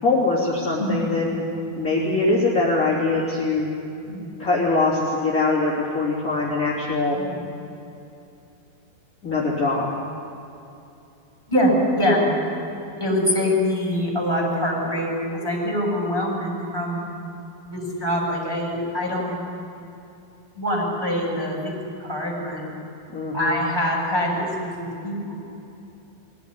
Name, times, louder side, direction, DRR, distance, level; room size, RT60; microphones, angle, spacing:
voice 1, 0.0-1.4 1.8-3.7 4.4-7.2 9.2-9.9 23.1-23.6, left 3 dB, 25° left, -6 dB, 3.5 m, -22 dB
voice 2, 0.8-1.1 4.1-4.3 7.1-7.4 11.5-12.2 13.0-17.0 17.6-19.4 20.5-22.6 23.3-25.4, equal, 5° right, -4 dB, 6.5 m, -24 dB
23.0 x 17.0 x 9.8 m, 2.7 s
omnidirectional pair, 4.4 m